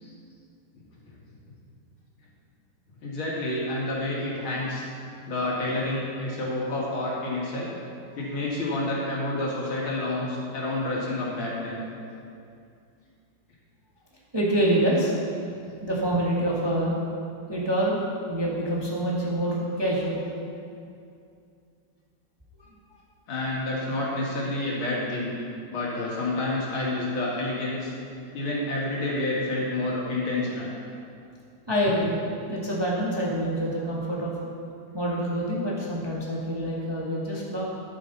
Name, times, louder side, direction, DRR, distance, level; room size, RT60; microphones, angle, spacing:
voice 1, 3.0-4.9 5.3-7.7 8.2-11.8 23.3-25.3 25.7-27.9 28.3-30.7 31.8-31.9, left 2 dB, 75° left, -5 dB, 2.9 m, -29 dB
voice 2, 14.3-15.2 15.8-17.0 17.5-18.0 18.3-20.3 31.7-32.2 32.5-34.3 34.9-37.6, right 1 dB, 15° right, -5 dB, 1.3 m, -26 dB
11.0 x 9.3 x 4.0 m, 2.4 s
omnidirectional pair, 2.3 m